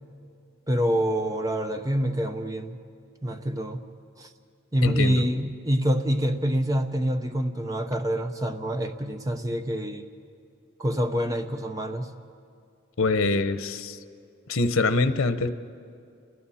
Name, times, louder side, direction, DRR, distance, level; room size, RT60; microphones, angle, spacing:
voice 1, 0.7-2.7 3.2-3.8 4.2-4.3 4.7-10.0 10.8-12.1, equal, 15° right, 6 dB, 0.9 m, -26 dB
voice 2, 4.8-5.3 13.0-14.0 14.5-15.5, left 3 dB, 90° left, 11 dB, 0.9 m, -24 dB
30.0 x 21.5 x 4.3 m, 2.4 s
head